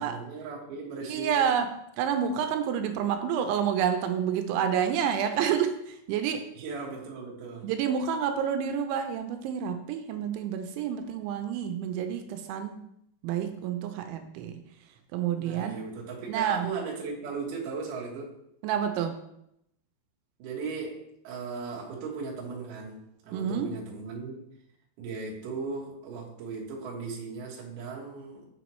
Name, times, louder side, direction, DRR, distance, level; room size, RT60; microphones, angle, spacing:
voice 1, 0.0-1.5 6.5-7.7 15.3-18.3 20.4-24.5 25.0-28.5, right 4 dB, 65° right, -3 dB, 2.1 m, -37 dB
voice 2, 1.0-6.5 7.6-12.8 13.2-14.6 15.1-15.8 16.3-16.7 18.6-19.2 23.3-23.8, right 8 dB, 85° right, 7 dB, 2.9 m, -29 dB
6.8 x 6.1 x 3.0 m, 0.79 s
omnidirectional pair, 5.3 m